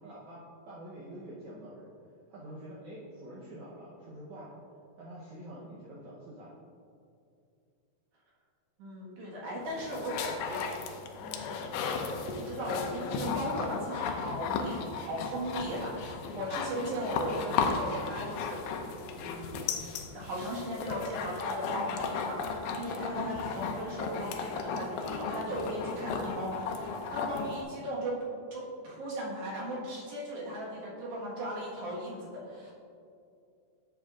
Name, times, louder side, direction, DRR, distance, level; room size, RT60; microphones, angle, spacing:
voice 1, 0.0-1.9 2.3-4.6 5.0-6.6, right 1 dB, 80° right, -7 dB, 1.7 m, -46 dB
voice 2, 8.8-11.6 12.2-18.9 19.2-19.6 20.1-22.4 22.7-28.2 28.5-32.7, right 1 dB, 60° right, -6 dB, 2.7 m, -37 dB
sound 1, 9.6-27.6, left 5 dB, 85° left, 2.1 m, -35 dB
11.5 x 7.4 x 2.5 m, 2.5 s
omnidirectional pair, 4.7 m